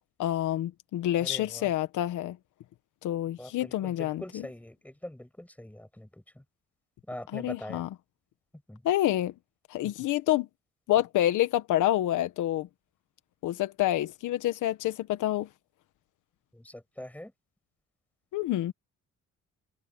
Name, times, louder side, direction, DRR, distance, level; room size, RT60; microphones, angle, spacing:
voice 1, 0.2-2.4 3.0-4.2 7.3-7.9 8.8-9.3 9.7-10.5 10.9-12.7 13.4-15.5 18.3-18.7, left 13 dB, 85° left, 1.3 m, -27 dB
voice 2, 1.2-1.7 3.4-6.4 7.1-7.8 8.7-8.8 16.5-17.3, left 1 dB, 5° left, 6.4 m, -43 dB
cardioid pair, 90°, 30 cm